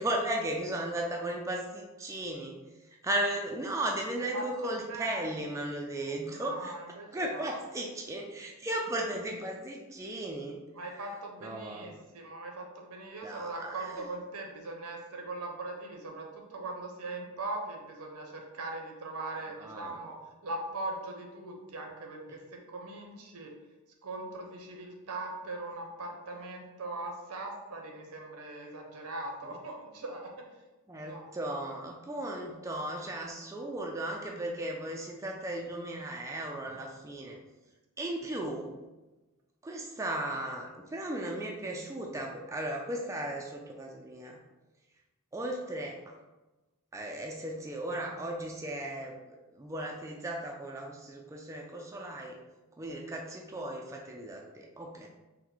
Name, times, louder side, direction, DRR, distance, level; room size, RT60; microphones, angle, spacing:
voice 1, 0.0-2.6 3.0-6.7 7.1-11.1 11.4-12.0 13.2-14.1 19.5-20.0 22.3-22.4 29.4-29.5 30.9-37.4 38.0-38.7 39.6-44.4 45.3-46.0 46.9-52.4 52.8-55.1, right 1 dB, 15° right, 0 dB, 0.3 m, -36 dB
voice 2, 4.3-5.2 6.3-7.6 10.7-20.2 20.4-23.5 24.0-30.3 31.0-31.3, right 2 dB, 85° right, 1 dB, 0.8 m, -40 dB
4.4 x 2.1 x 3.8 m, 1.1 s
head